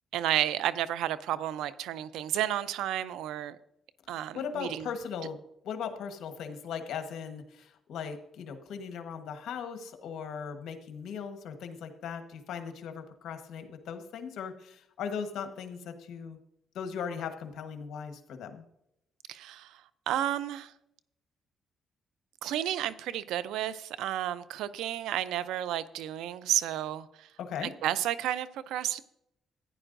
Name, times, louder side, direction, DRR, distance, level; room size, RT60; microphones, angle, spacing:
voice 1, 0.1-3.6 4.1-4.9 19.3-20.7 22.4-27.3 27.6-29.0, right 12 dB, 90° right, 0.5 m, -32 dB
voice 2, 4.3-5.4 5.6-16.4 16.7-18.6 27.4-27.7, left 7 dB, 75° left, 1.2 m, -38 dB
14.5 x 9.8 x 2.6 m
cardioid pair, 90°, 0 cm